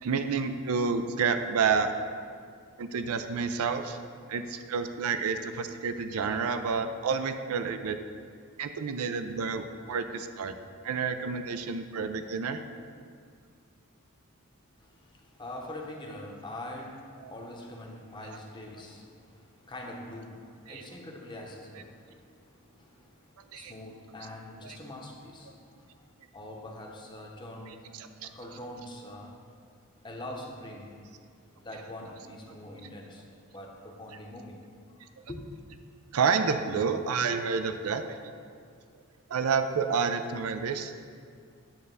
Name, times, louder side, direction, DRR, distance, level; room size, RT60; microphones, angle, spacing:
voice 1, 0.0-1.9 2.8-4.0 4.3-8.0 8.6-10.6 10.8-12.6 17.2-17.3 18.2-18.4 20.7-20.9 23.5-23.7 24.6-24.8 27.9-28.3 36.1-38.2 39.3-41.0, right 5 dB, 80° right, 8 dB, 0.4 m, -29 dB
voice 2, 14.8-26.0 26.3-27.9 28.2-29.3 30.0-31.0 31.5-33.3 33.5-34.6 35.3-35.4, left 1 dB, 20° left, 0 dB, 0.8 m, -44 dB
8.9 x 3.3 x 6.7 m, 2.2 s
head